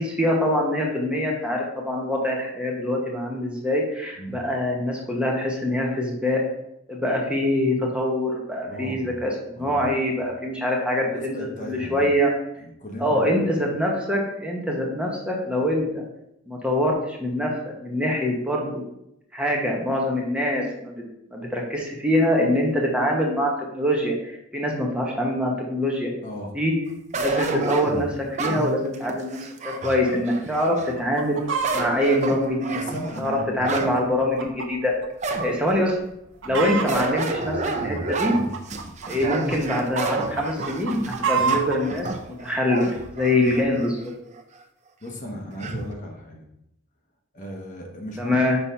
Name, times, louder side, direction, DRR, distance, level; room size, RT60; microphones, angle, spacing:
voice 1, 0.0-6.4 6.9-12.3 13.0-16.0 16.5-17.5 17.8-18.8 19.3-21.0 21.3-26.1 26.5-26.7 27.2-29.4 29.6-31.4 31.7-32.8 33.2-34.9 35.4-36.0 36.4-38.4 39.1-42.1 42.4-44.1 48.2-48.6, left 1 dB, 5° right, -2 dB, 1.0 m, -24 dB
voice 2, 8.7-9.2 9.6-9.9 11.0-12.2 12.6-13.3 13.7-13.8 26.2-26.5 32.7-33.9 36.4-36.7 45.0-46.5 47.3-48.4, equal, 40° left, 1 dB, 1.1 m, -36 dB
sound 1, 27.1-31.0 31.4-34.0 34.4-34.5 35.2-35.8 36.9-43.9 44.4-44.5 45.6-45.9, right 3 dB, 35° right, 0.6 m, -30 dB
Chicken rooster, 31.0-31.8 32.4-34.7 35.0-35.1 35.7-35.9 36.2-37.1 37.8-39.6 40.0-41.8 42.5-42.6, right 6 dB, 65° right, 0.8 m, -28 dB
5.7 x 3.9 x 5.6 m, 0.81 s
head